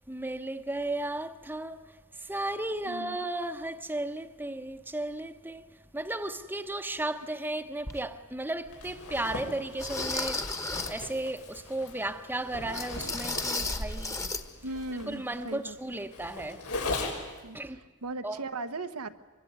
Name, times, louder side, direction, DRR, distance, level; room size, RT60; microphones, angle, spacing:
voice 1, 0.1-14.2 15.1-16.7 17.5-17.8 18.2-18.4, right 1 dB, 10° right, 1.0 m, -35 dB
voice 2, 2.9-3.2 14.6-15.8 17.4-19.1, right 2 dB, 75° right, 1.2 m, -38 dB
sound 1, 7.9-8.0 8.7-8.8 9.8-11.1 12.7-14.5 14.7-14.9 15.3-15.4, left 3 dB, 15° left, 1.4 m, -34 dB
Zipper (clothing), 8.7-17.4, left 2 dB, 90° left, 6.2 m, -39 dB
25.5 x 22.5 x 9.5 m
head